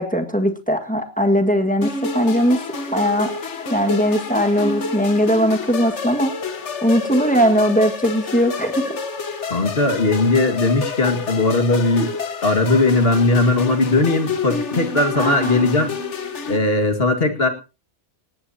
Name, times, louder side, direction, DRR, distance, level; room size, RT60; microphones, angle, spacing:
voice 1, 0.0-2.6 2.9-3.3 3.7-6.3 6.8-9.0 15.1-15.7, equal, 5° left, 5 dB, 1.7 m, -19 dB
sound 1, 1.8-16.6, left 4 dB, 75° left, 1.7 m, -29 dB
voice 2, 9.5-12.1 12.4-15.9 16.5-17.5, left 2 dB, 55° left, 6 dB, 2.2 m, -18 dB
19.5 x 16.5 x 2.8 m, 0.32 s
omnidirectional pair, 1.2 m